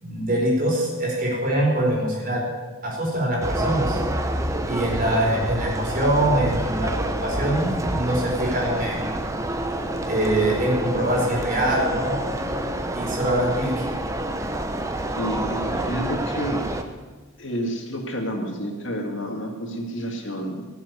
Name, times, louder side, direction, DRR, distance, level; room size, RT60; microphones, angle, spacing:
voice 1, 0.0-2.4 2.8-4.0 4.7-6.9 7.2-9.1 10.1-12.2 12.9-13.8, right 1 dB, 40° right, -2 dB, 4.8 m, -23 dB
sound 1, 3.4-16.8, right 1 dB, 15° right, 0.8 m, -27 dB
voice 2, 15.2-16.6 17.4-20.7, equal, 55° left, 2 dB, 2.2 m, -29 dB
17.5 x 7.5 x 9.8 m, 1.3 s
head